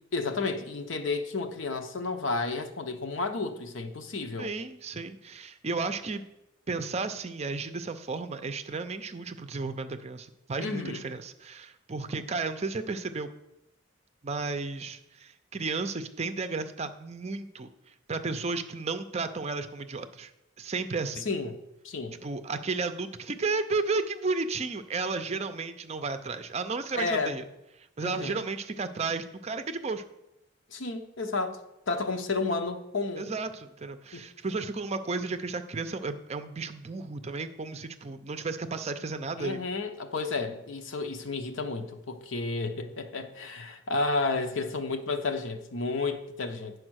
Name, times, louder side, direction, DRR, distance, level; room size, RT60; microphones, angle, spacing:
voice 1, 0.1-4.5 10.6-11.0 21.2-21.5 21.8-22.1 26.9-27.4 28.0-28.4 30.7-31.6 31.9-33.3 34.1-34.2 39.4-46.7, left 3 dB, 70° left, 7 dB, 0.8 m, -31 dB
voice 2, 4.4-6.2 6.7-13.3 14.2-17.7 18.1-20.3 20.6-21.3 22.2-27.5 28.0-30.0 33.2-39.6, right 4 dB, 30° right, 9 dB, 0.5 m, -33 dB
9.7 x 4.8 x 6.3 m, 0.90 s
head